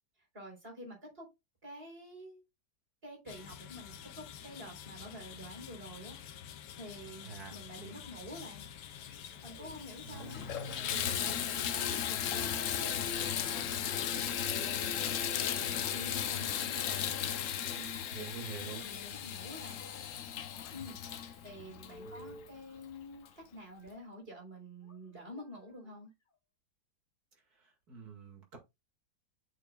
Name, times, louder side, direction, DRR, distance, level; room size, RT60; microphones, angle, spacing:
voice 1, 0.3-1.3 1.6-2.4 3.0-6.4 6.8-8.7 9.4-10.5 10.8-17.1 17.7-18.2 18.6-19.8 20.7-21.0 21.4-26.1, equal, 35° right, 4.1 m, -49 dB
sound 1, 3.3-13.7, left 9 dB, 90° left, 1.4 m, -49 dB
voice 2, 7.2-8.0 10.0-11.1 18.1-18.8 22.0-22.3 27.6-28.6, right 4 dB, 65° right, 2.5 m, -47 dB
sound 2, 7.8-8.4 9.0-11.5 12.0-12.3 13.0-13.3 14.0-15.1 15.5-16.0 16.3-17.5 17.9-18.5 18.8-20.1 20.4-22.5 23.7-24.1 24.8-25.0 25.3-25.5 25.8-26.0 26.3-26.4, left 1 dB, 35° left, 1.4 m, -57 dB
Water tap faucet / Bathtub (filling or washing), 9.6-9.7 10.2-22.6 23.3-23.4 23.9-24.0, left 9 dB, 60° left, 0.9 m, -35 dB
8.2 x 6.7 x 2.3 m
omnidirectional pair, 1.8 m